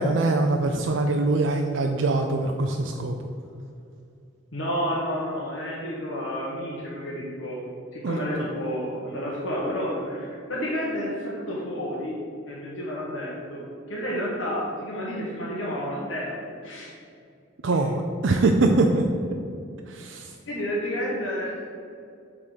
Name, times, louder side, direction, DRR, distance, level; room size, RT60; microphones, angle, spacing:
voice 1, 0.0-3.2 8.0-8.2 17.6-19.1 19.9-20.3, right 2 dB, 70° right, 3 dB, 0.5 m, -23 dB
voice 2, 4.5-12.2 12.5-13.6 13.9-16.4 16.6-16.9 20.5-21.6, equal, 70° left, -6 dB, 1.3 m, -30 dB
7.5 x 3.8 x 6.5 m, 2.4 s
head